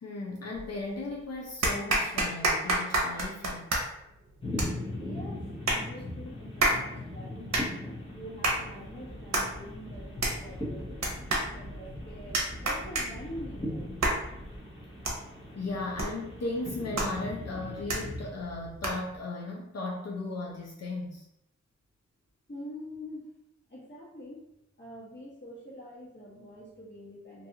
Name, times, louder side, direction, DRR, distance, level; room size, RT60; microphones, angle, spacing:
voice 1, 0.0-3.7 15.6-21.3, left 2 dB, 60° left, -2 dB, 0.5 m, -36 dB
sound 1, 0.5-1.1 1.6-19.2, right 2 dB, 65° right, 0.7 m, -32 dB
sound 2, 4.4-18.3, left 1 dB, 20° left, 0.7 m, -40 dB
voice 2, 4.9-11.1 11.5-13.9 22.5-23.3 23.7-27.5, equal, 40° left, -6 dB, 1.3 m, -45 dB
sound 3, 8.5-14.6, equal, 10° right, 0.3 m, -46 dB
2.6 x 2.3 x 2.7 m, 0.82 s
wide cardioid pair, 70°, 29 cm